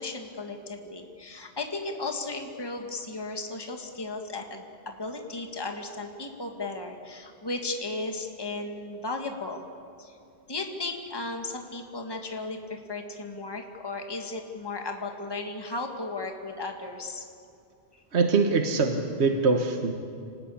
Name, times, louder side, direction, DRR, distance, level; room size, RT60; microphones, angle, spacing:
voice 1, 0.0-9.7 10.0-10.2 10.5-17.3 17.9-18.0, left 3 dB, 20° left, 3 dB, 1.8 m, -35 dB
voice 2, 18.1-19.9, right 4 dB, 70° right, 4 dB, 1.6 m, -23 dB
26.5 x 19.0 x 8.6 m, 2.6 s
omnidirectional pair, 1.1 m